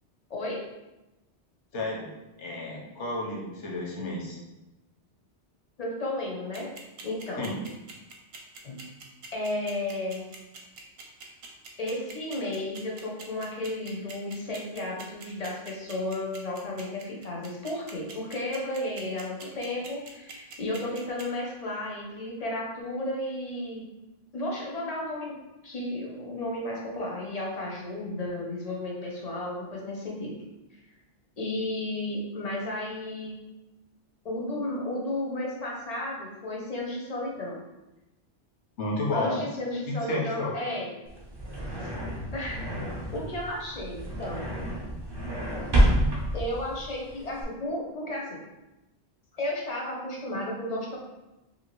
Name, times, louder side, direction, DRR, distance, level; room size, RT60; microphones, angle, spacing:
voice 1, 0.3-0.7 5.8-6.7 7.0-7.5 8.6-8.9 9.3-10.2 11.8-23.8 24.3-25.4 25.6-30.4 31.4-33.3 34.2-37.6 39.1-40.9 42.3-42.6 43.1-44.5 46.3-48.4 49.3-51.0, left 1 dB, 50° left, -2 dB, 0.5 m, -33 dB
voice 2, 1.7-2.1 2.4-4.4 7.4-7.5 38.8-39.4 39.9-40.5 41.8-41.9, left 2 dB, 85° left, -2 dB, 1.1 m, -31 dB
sound 1, 6.5-21.2, right 4 dB, 70° right, 0.8 m, -44 dB
sound 2, 41.1-47.4, equal, 35° right, 0.4 m, -28 dB
2.8 x 2.5 x 3.0 m, 1.0 s
omnidirectional pair, 1.2 m